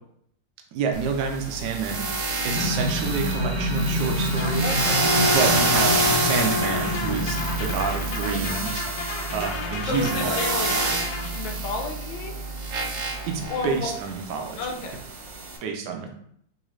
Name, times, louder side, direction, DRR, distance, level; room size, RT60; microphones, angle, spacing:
voice 1, 0.7-2.1 2.4-4.7 5.3-8.9 9.3-10.7 13.3-14.6 15.6-16.1, right 5 dB, 70° right, 3 dB, 1.2 m, -28 dB
sound 1, 0.9-15.6, right 2 dB, 85° right, 0.6 m, -27 dB
sound 2, 2.5-7.7, left 1 dB, 45° right, 1.1 m, -28 dB
sound 3, 4.2-11.9, left 4 dB, 70° left, 1.0 m, -34 dB
voice 2, 4.6-5.1 8.0-8.3 9.8-10.7 11.3-12.4 13.5-13.9 14.6-15.0, left 4 dB, 85° left, 3 dB, 1.4 m, -32 dB
4.0 x 2.8 x 3.1 m, 0.68 s
omnidirectional pair, 2.1 m